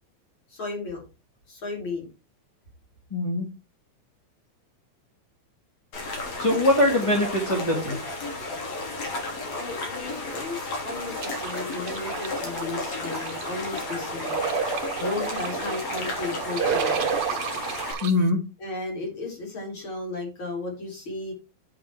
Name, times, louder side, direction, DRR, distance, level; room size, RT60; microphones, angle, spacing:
voice 1, 0.5-1.0 1.5-2.1 6.9-7.0 9.5-14.4 15.0-17.1 18.6-21.3, left 3 dB, 40° left, 0 dB, 4.9 m, -34 dB
voice 2, 3.1-3.5 6.4-7.9 18.0-18.4, left 1 dB, 15° left, -1 dB, 1.7 m, -22 dB
sound 1, 5.9-17.9, left 2 dB, 65° left, 4.5 m, -33 dB
sound 2, 11.2-18.1, right 6 dB, 55° right, 1.8 m, -30 dB
9.9 x 6.0 x 4.7 m, 0.30 s
omnidirectional pair, 3.4 m